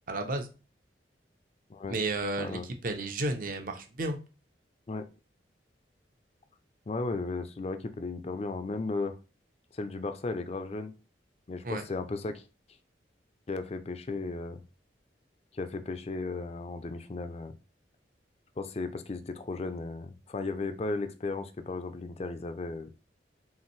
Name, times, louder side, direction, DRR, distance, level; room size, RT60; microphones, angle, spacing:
voice 1, 0.1-0.5 1.9-4.2 11.6-11.8, right 2 dB, 50° right, 6 dB, 0.7 m, -32 dB
voice 2, 6.9-9.2 9.7-10.9 11.5-12.4 13.5-14.6 15.5-17.5 18.6-22.9, left 3 dB, 35° left, 9 dB, 0.4 m, -35 dB
5.7 x 2.6 x 3.1 m, 0.33 s
head